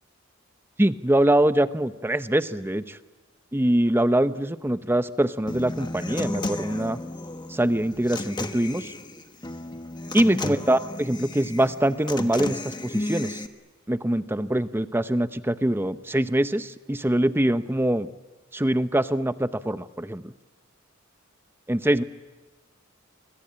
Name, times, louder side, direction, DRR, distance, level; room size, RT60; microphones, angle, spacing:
voice 1, 0.8-3.0 3.5-7.0 7.5-8.9 10.1-13.4 13.9-18.1 18.5-20.3 21.7-22.0, right 1 dB, 10° right, 12 dB, 0.7 m, -23 dB
Human voice / Acoustic guitar, 5.5-13.5, left 2 dB, 20° left, 1.3 m, -33 dB
26.0 x 23.0 x 8.7 m, 1.3 s
head